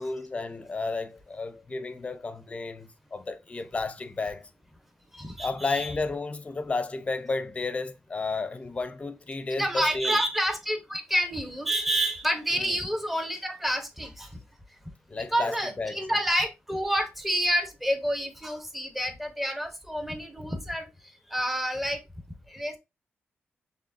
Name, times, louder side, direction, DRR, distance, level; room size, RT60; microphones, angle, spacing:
voice 1, 0.0-4.4 5.4-10.2 12.5-12.8 15.1-16.2, left 3 dB, 30° left, 0.6 m, -32 dB
voice 2, 5.1-5.9 9.6-14.4 15.1-22.0 22.5-22.8, equal, 5° right, 0.9 m, -29 dB
4.7 x 3.5 x 2.6 m
cardioid pair, 95°, 4 cm